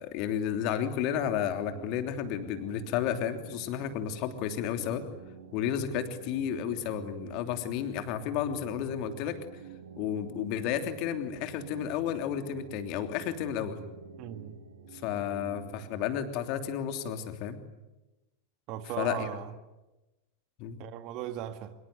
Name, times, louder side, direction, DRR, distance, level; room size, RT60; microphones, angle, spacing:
voice 1, 0.0-5.0 5.5-9.4 10.0-13.8 14.9-17.6 19.0-19.3 20.6-20.8, left 9 dB, 40° left, 3.1 m, -32 dB
sound 1, 1.1-16.0, right 6 dB, 65° right, 4.5 m, -48 dB
voice 2, 14.2-14.6 18.7-19.5 20.8-21.7, right 11 dB, 40° right, 1.9 m, -37 dB
25.0 x 23.0 x 9.5 m
figure-of-eight pair, 90°, 0 cm